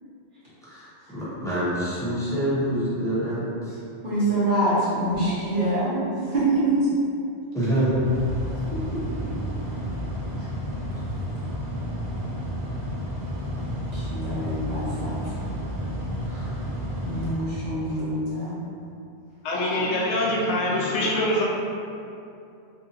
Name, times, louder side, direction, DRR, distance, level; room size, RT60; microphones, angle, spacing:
voice 1, 0.6-3.8 7.5-8.1 16.3-16.5, right 1 dB, 5° left, -12 dB, 0.7 m, -26 dB
voice 2, 4.0-5.9 6.3-6.7 8.7-8.8 9.1-9.2 10.4-10.5 13.9-15.4 17.0-18.6 20.2-20.3, right 1 dB, 50° right, -12 dB, 1.2 m, -25 dB
Mechanical fan, 7.5-18.1, equal, 75° right, 1.0 m, -31 dB
voice 3, 19.4-21.4, left 1 dB, 80° left, -3 dB, 0.9 m, -24 dB
2.8 x 2.7 x 2.6 m, 2.6 s
omnidirectional pair, 1.2 m